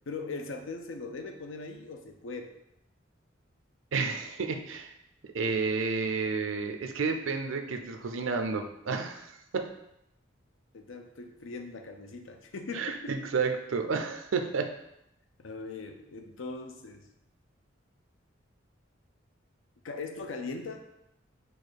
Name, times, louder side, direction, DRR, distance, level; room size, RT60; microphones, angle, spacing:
voice 1, 0.1-2.5 10.7-13.1 15.4-17.0 19.8-20.8, left 3 dB, 90° left, 5 dB, 0.5 m, -40 dB
voice 2, 3.9-4.9 5.2-9.7 12.7-14.7, right 4 dB, 85° right, 6 dB, 0.5 m, -31 dB
4.6 x 2.5 x 4.5 m, 0.83 s
head